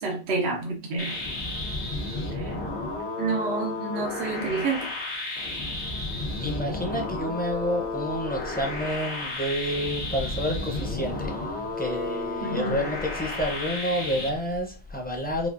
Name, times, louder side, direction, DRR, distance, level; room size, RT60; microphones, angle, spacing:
voice 1, 0.0-1.1 2.3-2.6 3.2-4.9 12.4-12.8, right 3 dB, 75° right, 1 dB, 1.0 m, -29 dB
sound 1, 1.0-14.3, left 2 dB, 85° left, 1.6 m, -32 dB
voice 2, 6.4-15.5, equal, 10° left, 1 dB, 0.7 m, -29 dB
5.0 x 2.4 x 2.5 m, 0.35 s
omnidirectional pair, 1.1 m